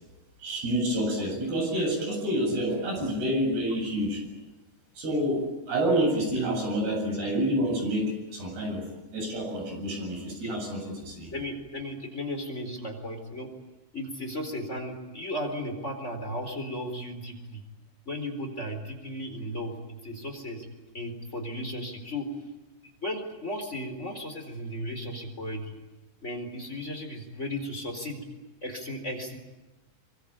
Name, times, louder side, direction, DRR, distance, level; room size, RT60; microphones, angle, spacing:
voice 1, 0.4-4.3 5.0-8.9 9.1-11.3, right 1 dB, 55° right, 2 dB, 10.0 m, -28 dB
voice 2, 11.3-13.5 13.9-17.6 18.1-20.7 20.9-22.3 23.0-25.7 26.2-28.2 28.6-29.4, left 1 dB, 15° left, 4 dB, 3.9 m, -35 dB
25.0 x 24.0 x 9.0 m, 1.1 s
omnidirectional pair, 5.4 m